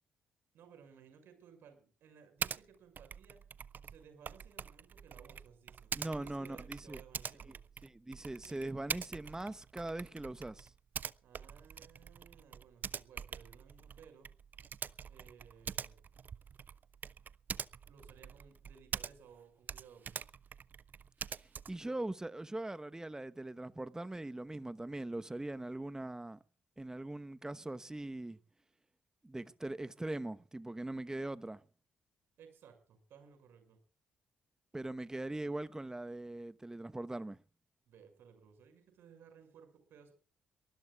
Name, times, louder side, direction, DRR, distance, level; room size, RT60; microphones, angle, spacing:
voice 1, 0.5-3.4 3.8-7.6 11.2-14.3 15.1-16.1 17.9-20.2 32.4-33.8 37.9-40.1, right 7 dB, 65° right, 6.0 m, -59 dB
Typing, 2.4-2.6 2.9-19.4 19.6-21.9, right 7 dB, 45° right, 0.6 m, -44 dB
voice 2, 6.0-7.0 7.5-7.6 7.8-10.7 21.7-26.4 26.8-28.4 29.2-31.6 34.7-37.4, right 2 dB, 15° right, 1.0 m, -41 dB
23.0 x 19.5 x 2.4 m
hypercardioid pair, 40°, 4 cm